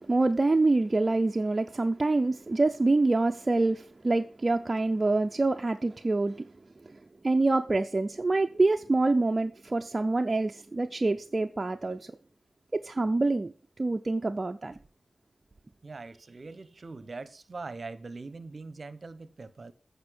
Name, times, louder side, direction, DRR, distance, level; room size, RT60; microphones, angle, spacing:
voice 1, 0.0-6.5 6.8-7.0 7.2-12.1 12.7-14.8, right 2 dB, 35° right, 0.5 m, -26 dB
voice 2, 15.8-19.7, right 3 dB, 50° right, 0.9 m, -42 dB
8.2 x 5.2 x 6.3 m
cardioid pair, 55°, 0 cm